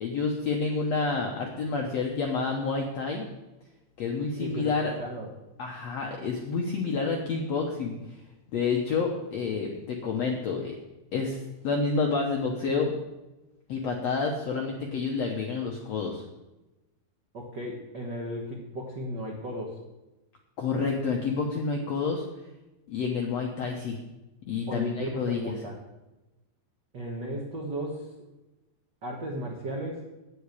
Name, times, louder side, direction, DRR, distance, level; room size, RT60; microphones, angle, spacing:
voice 1, 0.0-3.2 4.0-4.9 5.6-8.2 8.5-10.8 11.1-12.9 13.7-16.2 20.6-22.2 22.9-24.0 24.5-25.5, left 4 dB, 75° left, 1 dB, 1.5 m, -29 dB
voice 2, 4.4-4.7 5.0-5.3 17.3-19.8 24.7-25.8 26.9-28.1 29.0-30.1, right 1 dB, 85° right, -1 dB, 0.9 m, -35 dB
9.3 x 8.1 x 8.3 m, 1.0 s
omnidirectional pair, 4.6 m